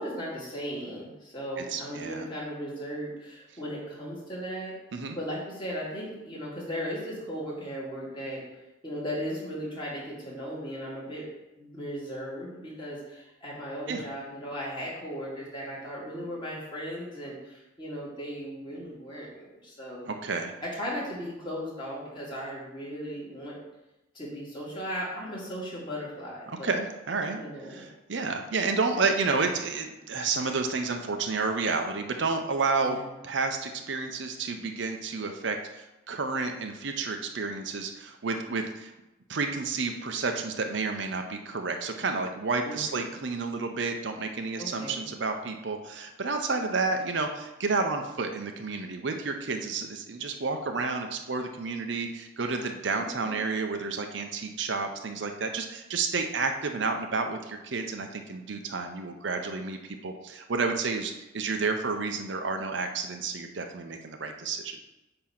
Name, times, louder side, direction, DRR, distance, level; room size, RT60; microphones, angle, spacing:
voice 1, 0.0-4.7 5.1-8.4 8.8-11.3 11.6-20.1 20.6-23.6 24.1-26.7 27.3-27.9 32.8-33.1 42.6-43.1 44.6-45.0 52.9-53.4, equal, 25° left, -6 dB, 2.3 m, -37 dB
voice 2, 1.6-2.3 4.9-5.2 13.9-14.0 20.1-20.5 26.5-27.4 27.7-33.0 33.2-38.9 39.3-59.8 60.0-64.8, right 4 dB, 65° right, 5 dB, 0.7 m, -30 dB
8.6 x 2.9 x 5.8 m, 1.0 s
head